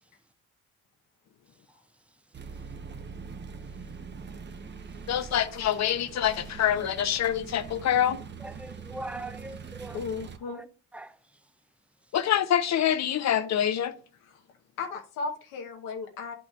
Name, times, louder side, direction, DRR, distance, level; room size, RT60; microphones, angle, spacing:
sound 1, 2.3-10.4, right 5 dB, 35° right, 0.8 m, -43 dB
voice 1, 5.1-8.2 12.1-13.9, left 10 dB, 60° left, 0.8 m, -25 dB
voice 2, 8.4-10.0 10.5-10.6 10.9-11.2, right 2 dB, 5° right, 0.4 m, -40 dB
voice 3, 9.9-10.6 14.8-16.3, left 4 dB, 90° left, 1.0 m, -35 dB
10.5 x 6.0 x 2.4 m
cardioid pair, 75°, 31 cm